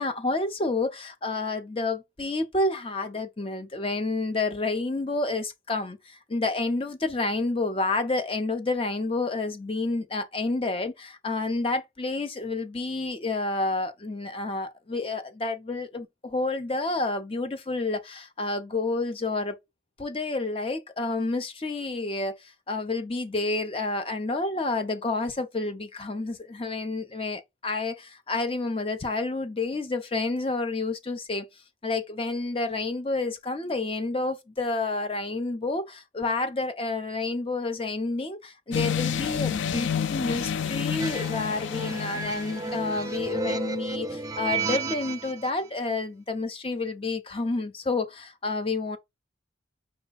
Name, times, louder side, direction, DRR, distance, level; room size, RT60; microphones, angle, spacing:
voice 1, 0.0-19.6 20.0-31.5 31.8-49.0, left 3 dB, 30° left, 0.6 m, -29 dB
Scary Halloween sound, 38.7-43.1, left 8 dB, 80° left, 0.4 m, -30 dB
sound 1, 41.0-45.5, right 4 dB, 20° right, 0.5 m, -32 dB
5.9 x 2.2 x 4.0 m
head